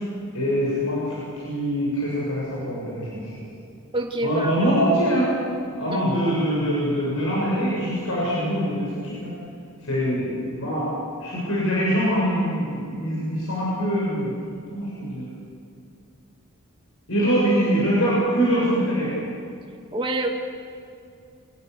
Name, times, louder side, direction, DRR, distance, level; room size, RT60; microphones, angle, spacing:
voice 1, 0.3-3.3 4.2-5.3 5.8-9.3 9.8-10.9 11.2-14.3 14.7-15.3 17.1-19.1, equal, 65° left, -7 dB, 7.6 m, -23 dB
voice 2, 3.9-4.5 5.9-6.2 19.9-20.3, right 1 dB, 25° right, 2 dB, 2.4 m, -27 dB
26.0 x 18.0 x 7.0 m, 2.4 s
head